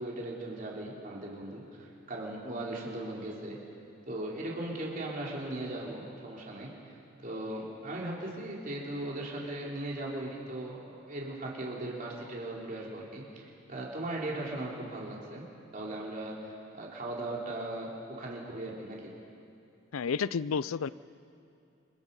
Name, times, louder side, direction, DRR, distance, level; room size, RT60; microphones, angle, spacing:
voice 1, 0.0-3.6 4.1-15.5 15.7-19.1, right 1 dB, 40° right, -3 dB, 3.6 m, -38 dB
voice 2, 19.9-20.9, left 6 dB, 85° left, 18 dB, 0.5 m, -30 dB
28.0 x 24.5 x 5.4 m, 2.6 s
head